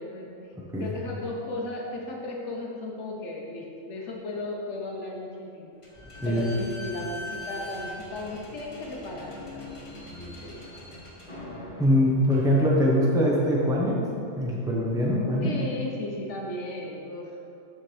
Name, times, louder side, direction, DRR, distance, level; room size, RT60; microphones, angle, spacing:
voice 1, 0.0-5.7 6.2-9.7 10.2-10.8 15.4-17.4, left 2 dB, 65° left, -1 dB, 1.2 m, -36 dB
Slam / Squeak, 5.8-13.1, left 1 dB, 25° left, 1.0 m, -42 dB
voice 2, 11.8-14.0 14.4-15.5, equal, 5° right, -3 dB, 0.8 m, -23 dB
7.2 x 7.1 x 3.3 m, 2.7 s
omnidirectional pair, 1.4 m